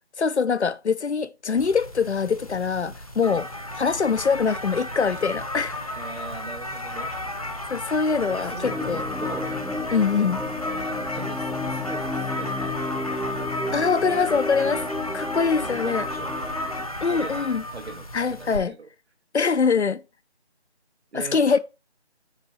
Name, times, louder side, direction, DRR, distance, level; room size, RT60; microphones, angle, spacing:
voice 1, 0.2-3.5 3.7-5.8 7.7-9.0 9.9-10.4 13.7-14.8 15.1-16.1 17.0-17.6 18.1-18.7 19.3-20.0 21.1-21.6, left 5 dB, 80° left, 0.7 m, -23 dB
sound 1, 1.6-18.6, left 1 dB, 35° left, 0.7 m, -33 dB
voice 2, 5.9-7.1 8.3-9.6 10.8-13.2 15.6-16.6 17.0-18.9 21.1-21.6, right 4 dB, 70° right, 0.9 m, -41 dB
sound 2, 8.6-16.8, left 2 dB, ahead, 0.4 m, -32 dB
5.9 x 3.8 x 4.4 m
figure-of-eight pair, 175°, 33 cm